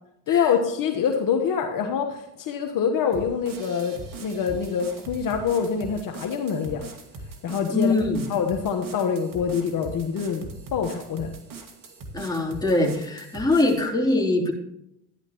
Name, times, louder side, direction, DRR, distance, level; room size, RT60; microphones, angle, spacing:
voice 1, 0.3-6.8 7.4-7.9 8.3-11.3, left 7 dB, 55° left, 3 dB, 1.3 m, -25 dB
sound 1, 3.1-13.8, right 3 dB, 55° right, 2.3 m, -41 dB
voice 2, 7.7-8.2 12.1-14.5, left 2 dB, 10° left, -1 dB, 3.3 m, -23 dB
13.5 x 10.5 x 3.0 m, 0.80 s
supercardioid pair, 80°, 40 cm